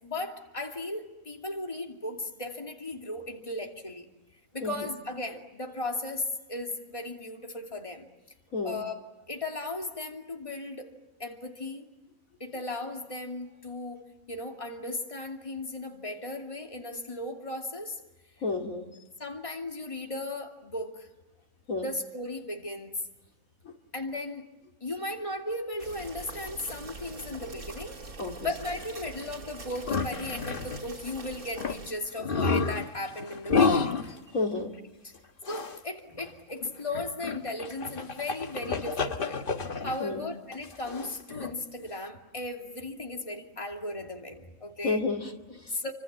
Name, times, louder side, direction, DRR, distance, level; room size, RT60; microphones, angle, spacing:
voice 1, 0.0-4.1 4.5-8.1 8.6-9.0 9.3-10.9 11.2-11.8 12.4-18.0 19.2-21.1 21.8-23.0 23.9-24.5 24.8-28.0 28.4-34.1 35.0-35.1 35.5-39.4 39.8-45.0 45.5-45.9, left 2 dB, 20° left, 2 dB, 2.7 m, -36 dB
voice 2, 8.5-8.8 18.4-18.9 21.7-21.9 23.6-23.7 28.2-28.5 34.3-34.7 40.0-40.2 44.8-45.7, left 3 dB, 70° left, 2 dB, 2.8 m, -31 dB
sound 1, 25.8-31.9, right 3 dB, 80° right, 3.6 m, -43 dB
sound 2, 29.9-30.9 31.2-31.3 31.6-31.8 32.2-34.2 35.4-35.8 36.2-36.3 36.6-40.0 40.5-41.5, left 4 dB, 40° left, 1.3 m, -30 dB
29.0 x 26.0 x 7.5 m, 1.0 s
omnidirectional pair, 1.5 m